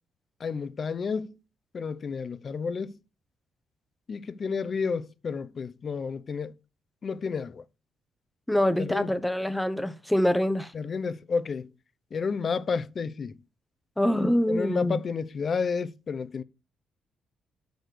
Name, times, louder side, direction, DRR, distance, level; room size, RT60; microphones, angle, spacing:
voice 1, 0.4-1.3 1.7-2.9 4.1-6.5 7.0-7.6 8.8-9.1 10.7-11.7 12.1-13.3 14.5-16.4, left 5 dB, 45° left, 0.8 m, -31 dB
voice 2, 8.5-10.7 14.0-15.0, left 1 dB, 5° left, 1.0 m, -25 dB
9.2 x 6.5 x 4.7 m
cardioid pair, 90°, 0 cm